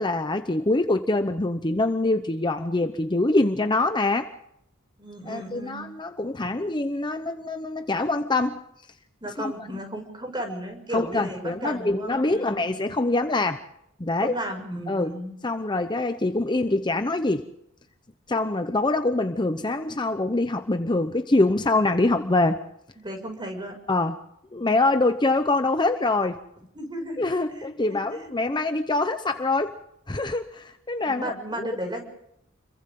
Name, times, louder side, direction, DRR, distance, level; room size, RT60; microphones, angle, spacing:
voice 1, 0.0-4.3 5.3-8.6 9.4-9.5 10.9-13.6 14.0-14.3 14.9-15.1 15.4-17.4 18.3-22.6 23.9-24.2 24.5-26.4 27.2-29.7 30.1-31.7, left 2 dB, 20° left, 7 dB, 0.9 m, -24 dB
voice 2, 5.0-5.9 9.2-13.0 14.2-15.4 23.0-23.8 26.7-28.6 31.0-32.0, right 1 dB, 20° right, 4 dB, 6.3 m, -35 dB
30.0 x 23.0 x 3.8 m, 0.76 s
head